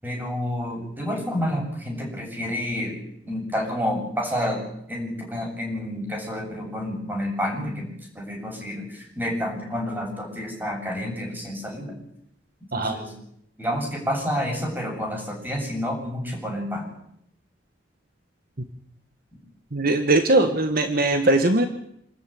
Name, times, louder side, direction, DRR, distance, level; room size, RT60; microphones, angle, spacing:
voice 1, 0.0-3.0 3.2-4.6 4.9-7.9 8.1-11.9 12.7-13.1 13.6-16.9, equal, 10° right, 1 dB, 7.8 m, -29 dB
voice 2, 19.7-21.6, right 2 dB, 55° right, 7 dB, 1.6 m, -20 dB
27.5 x 13.5 x 9.4 m, 0.74 s
head